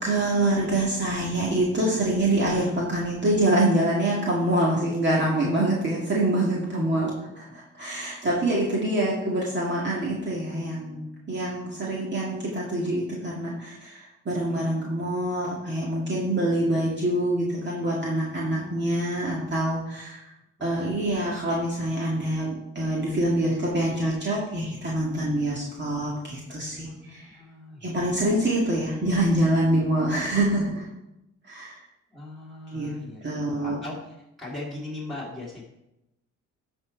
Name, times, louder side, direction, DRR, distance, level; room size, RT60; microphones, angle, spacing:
voice 1, 0.0-7.1 7.4-11.0 11.3-20.3 20.6-27.3 27.8-30.8 31.4-31.8 32.7-33.0 33.2-33.8, right 1 dB, 35° right, -4 dB, 2.0 m, -25 dB
voice 2, 8.9-9.4 14.5-14.7 18.4-19.6 20.6-20.9 26.7-28.2 32.1-35.6, left 2 dB, ahead, -6 dB, 2.7 m, -41 dB
11.5 x 4.5 x 4.6 m, 0.90 s
cardioid pair, 90°, 30 cm